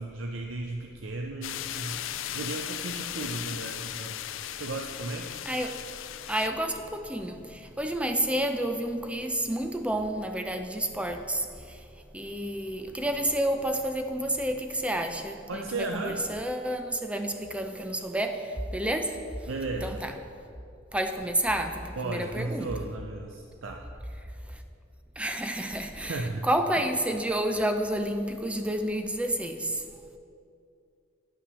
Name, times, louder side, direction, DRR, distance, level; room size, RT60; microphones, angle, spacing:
voice 1, 0.0-2.0 2.3-4.2 4.6-5.3 15.5-16.2 19.5-20.0 22.0-23.8 26.0-26.5, right 2 dB, 75° right, 2 dB, 0.6 m, -35 dB
sound 1, 1.4-6.5, left 11 dB, 70° left, 0.4 m, -37 dB
voice 2, 5.5-5.8 6.3-11.9 12.1-19.5 19.8-20.1 20.9-22.7 24.5-24.6 25.2-29.8, right 1 dB, 5° right, 6 dB, 0.6 m, -30 dB
9.9 x 5.7 x 6.9 m, 2.5 s
head